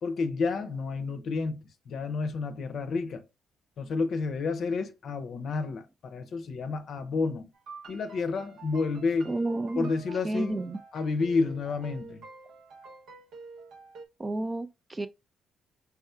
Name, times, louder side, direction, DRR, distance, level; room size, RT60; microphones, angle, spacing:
voice 1, 0.0-1.6 1.9-3.2 3.8-7.5 7.9-9.4 9.8-10.6 10.9-12.2, left 4 dB, 60° left, 0.6 m, -30 dB
sound 1, 7.5-14.1, right 4 dB, 80° right, 0.8 m, -48 dB
voice 2, 9.3-9.9 10.2-10.8 14.2-15.1, right 2 dB, 20° right, 0.3 m, -31 dB
4.3 x 3.6 x 2.3 m
cardioid pair, 90°, 0 cm